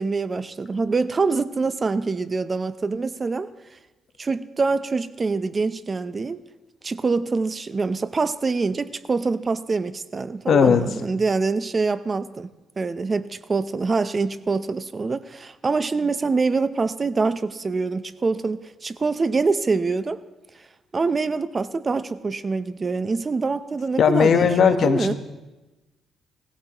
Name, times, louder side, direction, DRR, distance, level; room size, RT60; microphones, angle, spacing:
voice 1, 0.0-3.5 4.2-6.4 6.8-20.2 20.9-25.1, right 4 dB, 30° right, 13 dB, 0.6 m, -25 dB
voice 2, 10.5-10.9 24.0-25.1, left 7 dB, 60° left, 9 dB, 1.1 m, -17 dB
19.5 x 15.5 x 3.0 m, 1.1 s
cardioid pair, 90°, 0 cm